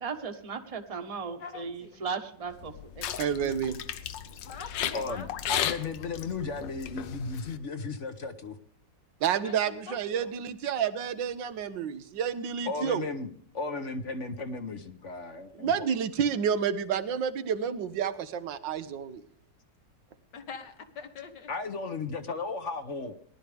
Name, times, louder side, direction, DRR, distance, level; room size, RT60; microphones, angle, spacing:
voice 1, 0.0-3.6, right 5 dB, 25° right, 5 dB, 1.1 m, -37 dB
voice 2, 1.4-2.0 4.4-5.3 9.4-10.4 20.3-21.5, left 5 dB, 70° left, 8 dB, 2.1 m, -44 dB
sound 1, 2.5-7.6, left 9 dB, 90° left, 1.5 m, -35 dB
voice 3, 3.2-3.8 9.2-13.0 15.5-19.2, right 8 dB, 85° right, 12 dB, 1.7 m, -29 dB
voice 4, 4.9-8.6 12.7-15.9 21.5-23.1, left 4 dB, 50° left, 9 dB, 1.1 m, -35 dB
19.0 x 12.0 x 3.4 m, 0.63 s
omnidirectional pair, 1.9 m